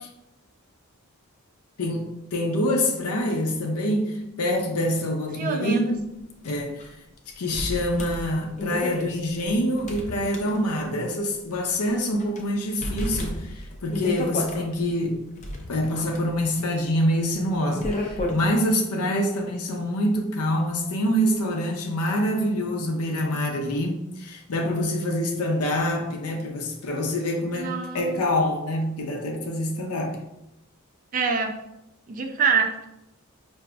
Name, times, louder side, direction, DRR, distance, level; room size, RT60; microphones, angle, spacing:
voice 1, 1.8-6.0 6.4-6.9 7.4-15.2 15.7-30.2, left 1 dB, 90° left, 0.6 m, -26 dB
voice 2, 5.4-5.8 27.6-28.2 31.1-31.6 32.1-32.9, right 5 dB, 35° right, 0.3 m, -25 dB
sound 1, 6.4-6.5 6.8-6.9 7.5-10.9 11.3-11.4 12.0-12.4 12.8-14.6 15.2-18.5, left 1 dB, 30° left, 0.4 m, -32 dB
4.9 x 2.6 x 2.3 m
head